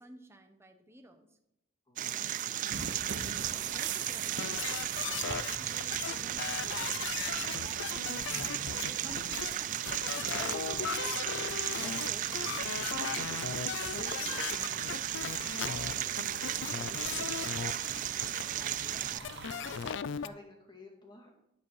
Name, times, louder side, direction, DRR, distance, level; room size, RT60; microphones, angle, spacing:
voice 1, 0.0-1.4 3.0-10.4 13.0-13.3, right 1 dB, 10° right, 6 dB, 0.9 m, -54 dB
voice 2, 1.9-2.4 10.4-11.1 11.5-12.8 14.0-21.3, left 1 dB, 20° left, 1 dB, 2.1 m, -51 dB
sound 1, 2.0-19.2, right 12 dB, 40° right, 0.3 m, -35 dB
sound 2, 2.7-19.9, right 5 dB, 55° right, 0.8 m, -44 dB
sound 3, 4.4-5.6 5.8-20.3, left 7 dB, 60° left, 0.4 m, -38 dB
10.0 x 8.0 x 4.6 m, 0.83 s
head